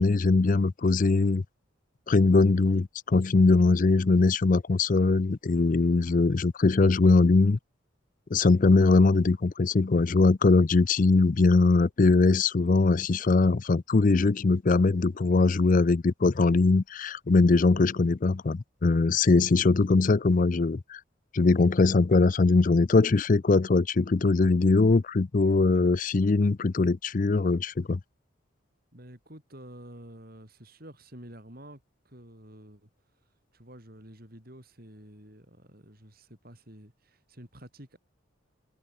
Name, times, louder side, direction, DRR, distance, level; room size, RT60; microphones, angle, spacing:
voice 1, 0.0-1.4 2.1-7.6 8.3-21.0 21.3-28.0, left 3 dB, 40° left, 0.5 m, -21 dB
voice 2, 28.9-32.9 33.5-38.0, right 1 dB, 45° right, 6.2 m, -49 dB
head